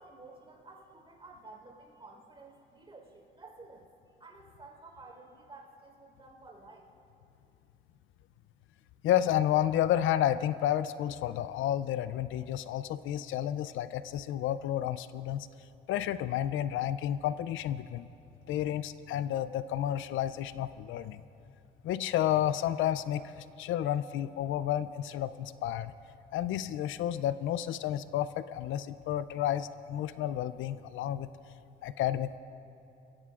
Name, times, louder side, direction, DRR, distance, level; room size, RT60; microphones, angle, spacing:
voice 1, 0.0-3.9 4.2-6.9, right 3 dB, 25° right, 0 dB, 4.0 m, -52 dB
voice 2, 9.0-15.5 15.9-18.1 18.5-21.2 21.8-23.2 23.6-25.9 26.3-31.3 31.8-32.4, left 11 dB, 80° left, 15 dB, 0.4 m, -31 dB
24.0 x 16.0 x 2.4 m, 2.8 s
cardioid pair, 90°, 20 cm